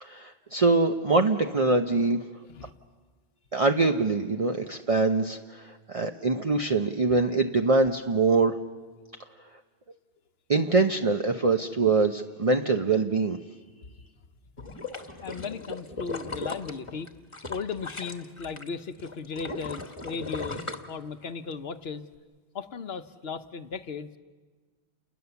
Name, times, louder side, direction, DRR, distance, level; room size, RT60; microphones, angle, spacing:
voice 1, 0.0-2.2 3.5-8.6 10.5-13.4, right 3 dB, 35° right, 5 dB, 0.8 m, -24 dB
sound 1, 14.6-18.7 19.0-21.5 21.9-22.0, left 3 dB, 30° left, 1.4 m, -37 dB
voice 2, 15.2-17.1 17.5-22.0 22.5-24.2, left 5 dB, 70° left, 10 dB, 1.2 m, -36 dB
29.5 x 20.5 x 7.0 m, 1.4 s
omnidirectional pair, 1.1 m